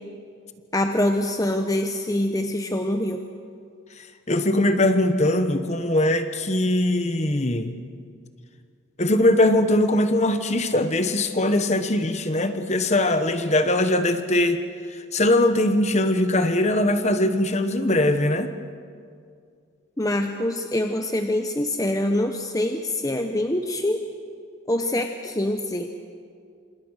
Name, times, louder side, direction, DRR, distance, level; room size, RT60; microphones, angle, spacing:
voice 1, 0.7-3.2 20.0-24.0 24.7-25.9, left 1 dB, 15° left, 5 dB, 0.9 m, -25 dB
voice 2, 4.3-7.8 9.0-14.6 14.9-18.5, left 1 dB, 35° left, 9 dB, 1.3 m, -21 dB
28.5 x 26.5 x 6.5 m, 2.3 s
head